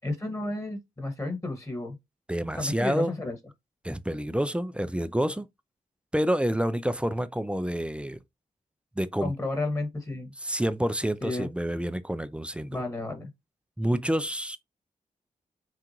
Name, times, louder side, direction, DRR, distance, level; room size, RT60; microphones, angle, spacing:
voice 1, 0.0-2.0 2.6-3.4 9.2-10.3 11.2-11.5 12.7-13.3, left 2 dB, 20° left, 1.7 m, -32 dB
voice 2, 2.3-3.1 3.8-5.5 6.1-8.2 9.0-9.3 10.4-12.8 13.8-14.6, equal, 5° right, 0.4 m, -28 dB
5.7 x 2.5 x 3.0 m
cardioid pair, 60°, 15 cm